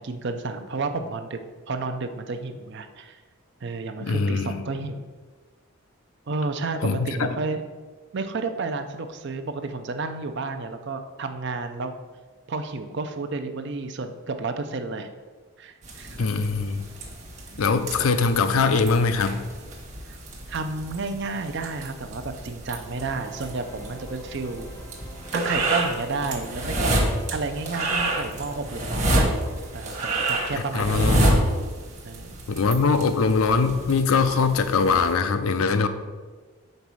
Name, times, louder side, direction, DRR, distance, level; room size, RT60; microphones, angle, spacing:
voice 1, 0.0-1.4 1.7-3.2 3.6-5.1 6.3-7.6 8.1-12.0 12.5-15.1 15.6-16.3 17.5-17.7 18.0-18.1 20.1-20.2 20.5-24.7 25.3-27.0 27.3-29.4 29.7-31.1 32.0-32.5, right 3 dB, 50° right, 8 dB, 0.5 m, -31 dB
voice 2, 4.0-4.6 6.8-7.4 16.2-16.8 17.6-19.4 30.7-31.4 32.5-35.9, left 4 dB, 75° left, 9 dB, 0.5 m, -22 dB
sound 1, 15.8-35.1, right 1 dB, 35° right, 1.1 m, -29 dB
sound 2, 23.0-31.2, right 1 dB, 10° left, 0.7 m, -48 dB
5.3 x 4.1 x 6.1 m, 1.4 s
head